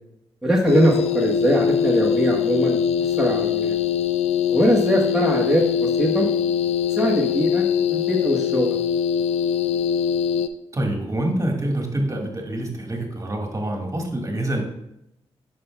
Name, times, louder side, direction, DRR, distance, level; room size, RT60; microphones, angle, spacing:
voice 1, 0.4-3.7 4.5-6.3 6.9-8.7, right 1 dB, 5° right, -3 dB, 1.4 m, -21 dB
sound 1, 0.7-10.5, left 8 dB, 80° left, 0.4 m, -22 dB
voice 2, 10.7-14.6, right 1 dB, 30° right, 1 dB, 1.8 m, -26 dB
9.2 x 5.6 x 2.3 m, 0.80 s
supercardioid pair, 45°, 11 cm